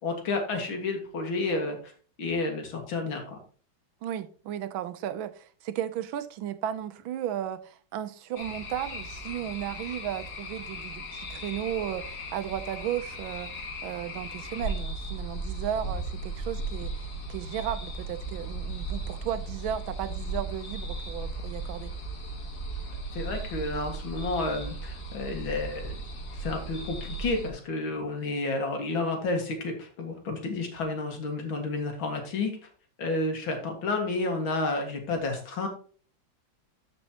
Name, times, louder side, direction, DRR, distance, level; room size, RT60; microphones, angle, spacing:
voice 1, 0.0-1.9 2.2-3.4 23.1-25.9 26.4-32.5 33.0-35.7, left 3 dB, 85° left, 2.6 m, -30 dB
voice 2, 4.0-21.9, right 10 dB, 90° right, 1.6 m, -35 dB
sound 1, 8.3-27.5, right 2 dB, 55° left, 2.0 m, -36 dB
13.5 x 5.4 x 2.9 m
omnidirectional pair, 2.1 m